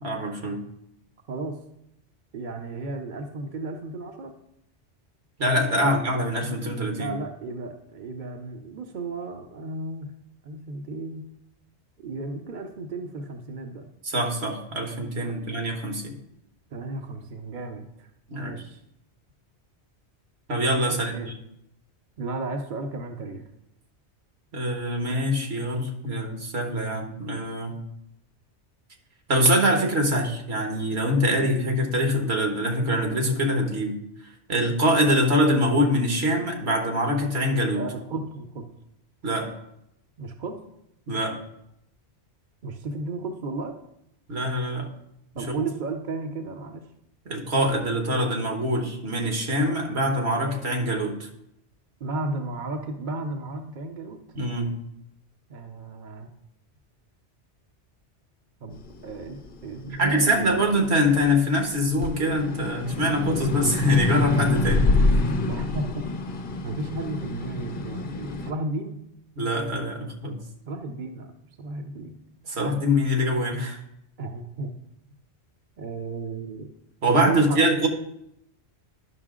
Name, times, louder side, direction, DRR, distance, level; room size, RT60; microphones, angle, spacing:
voice 1, 0.0-0.6 5.4-7.1 14.0-16.1 18.3-18.5 20.5-21.3 24.5-27.7 29.3-34.0 34.5-37.9 39.2-39.5 41.1-41.3 44.3-44.9 45.3-45.6 47.3-51.3 54.3-54.7 60.0-64.9 69.4-70.4 72.5-73.8 77.0-77.9, equal, 70° right, 3 dB, 1.5 m, -24 dB
voice 2, 1.3-1.6 2.3-4.3 5.8-5.9 6.9-10.1 10.4-11.3 12.0-13.9 15.2-15.4 16.7-18.1 18.3-18.8 21.1-21.3 22.2-23.4 37.8-38.7 40.2-40.6 42.6-43.7 45.4-46.9 52.0-54.2 55.5-56.3 58.6-58.8 59.0-60.6 65.4-66.1 66.6-69.0 70.7-71.3 71.6-72.2 74.2-74.7 75.8-76.7 77.1-77.6, right 3 dB, 50° right, 4 dB, 0.8 m, -33 dB
sound 1, 58.9-61.5 61.9-68.5, left 2 dB, 55° left, 0.8 m, -26 dB
11.0 x 5.7 x 3.7 m, 0.78 s
omnidirectional pair, 1.1 m